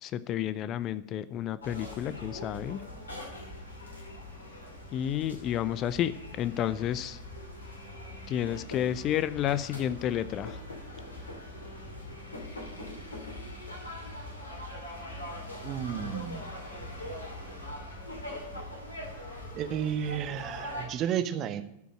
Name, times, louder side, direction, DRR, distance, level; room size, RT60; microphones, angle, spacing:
voice 1, 0.0-2.8 4.9-7.2 8.3-10.6, left 11 dB, 35° left, 16 dB, 0.5 m, -31 dB
sound 1, 1.6-20.9, left 1 dB, 75° left, 2.5 m, -42 dB
voice 2, 15.6-16.4 19.5-21.6, right 9 dB, 35° right, 10 dB, 0.9 m, -32 dB
13.0 x 5.3 x 8.8 m, 0.82 s
figure-of-eight pair, 90°, 0 cm